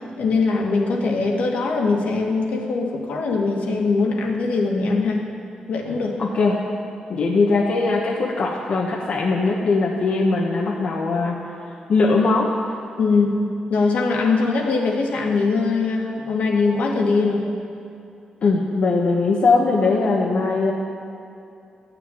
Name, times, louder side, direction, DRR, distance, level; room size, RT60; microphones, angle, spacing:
voice 1, 0.0-5.2 5.7-6.2 13.0-17.5, left 3 dB, 75° left, 0 dB, 2.1 m, -21 dB
voice 2, 6.2-6.6 7.1-11.4 11.9-12.5 18.4-20.7, left 3 dB, 55° left, -2 dB, 1.2 m, -20 dB
14.0 x 7.0 x 9.4 m, 2.6 s
wide cardioid pair, 145°, 3 cm